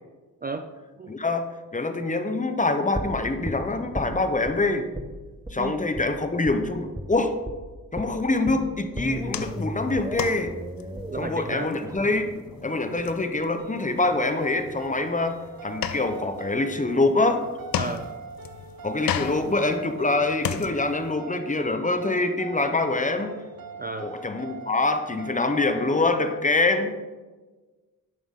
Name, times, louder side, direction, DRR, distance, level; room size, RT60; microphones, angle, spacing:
voice 1, 0.4-0.7 1.0-1.2 5.6-5.8 10.9-11.7 17.8-18.1 23.7-24.1, right 3 dB, 25° right, 8 dB, 0.4 m, -33 dB
voice 2, 1.1-4.9 5.5-7.4 7.9-10.5 11.2-12.3 12.6-17.4 18.8-23.3 24.0-26.9, left 2 dB, 20° left, 7 dB, 0.8 m, -25 dB
sound 1, 2.9-4.6 4.9-5.1 5.4-5.6 5.9-6.1 6.5-6.6 7.0-7.1 7.5-7.6 8.0-13.9 14.2-14.3, equal, 10° right, 0.8 m, -36 dB
sound 2, 9.0-21.1, left 9 dB, 80° left, 0.6 m, -36 dB
sound 3, 13.6-26.4, right 4 dB, 75° right, 0.8 m, -41 dB
9.4 x 6.2 x 3.7 m, 1.3 s
cardioid pair, 80°, 35 cm